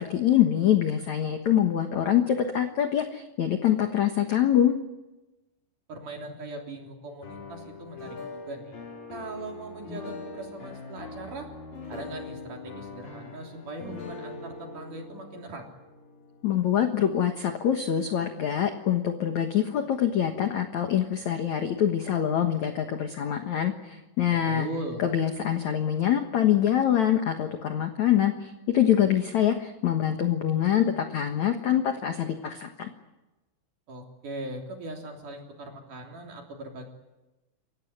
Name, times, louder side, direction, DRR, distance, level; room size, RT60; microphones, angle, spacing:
voice 1, 0.0-4.7 16.4-24.7 25.0-32.9, left 10 dB, 75° left, 6 dB, 1.7 m, -25 dB
voice 2, 5.9-8.8 9.1-11.5 11.9-15.7 24.5-25.0 33.9-36.9, right 2 dB, 45° right, 3 dB, 4.4 m, -40 dB
sound 1, 7.2-17.2, left 3 dB, 45° left, 6.2 m, -42 dB
28.5 x 16.0 x 9.5 m, 1.0 s
omnidirectional pair, 5.5 m